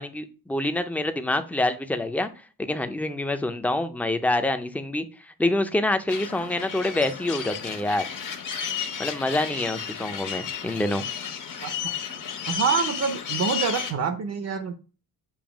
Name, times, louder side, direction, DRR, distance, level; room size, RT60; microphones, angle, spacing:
voice 1, 0.0-2.3 2.6-5.1 5.4-8.0 9.0-11.1, left 1 dB, 5° left, 0.4 m, -26 dB
sound 1, 6.1-13.9, left 7 dB, 55° left, 1.1 m, -32 dB
voice 2, 12.5-14.7, right 6 dB, 45° right, 0.6 m, -26 dB
7.1 x 2.7 x 5.0 m
cardioid pair, 140°, 37 cm